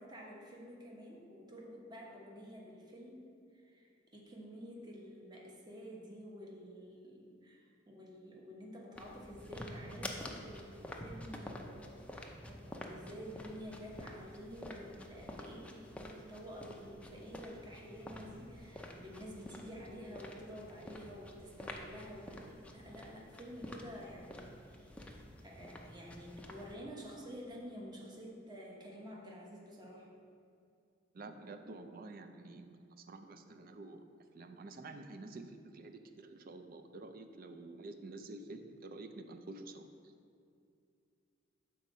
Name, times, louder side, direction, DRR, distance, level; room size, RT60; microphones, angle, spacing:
voice 1, 0.0-3.3 3.5-25.1 25.4-30.1, equal, 20° right, -3 dB, 1.0 m, -50 dB
sound 1, 9.0-26.8, left 1 dB, 5° left, 0.5 m, -49 dB
voice 2, 31.1-32.7 33.1-34.0 34.3-39.9, right 2 dB, 50° right, 7 dB, 0.5 m, -49 dB
6.4 x 4.1 x 5.5 m, 2.4 s
head